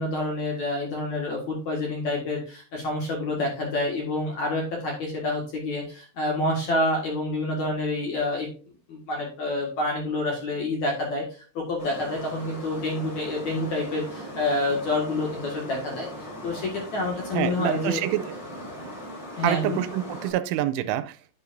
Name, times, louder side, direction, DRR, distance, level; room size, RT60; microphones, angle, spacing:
voice 1, 0.0-8.5 8.9-18.0 19.4-19.8, left 2 dB, 55° left, 2.3 m, -28 dB
sound 1, 11.8-20.3, equal, 10° left, 3.5 m, -39 dB
voice 2, 17.3-18.2 19.4-21.3, right 13 dB, 85° right, 3.1 m, -26 dB
9.9 x 8.9 x 2.6 m
omnidirectional pair, 5.5 m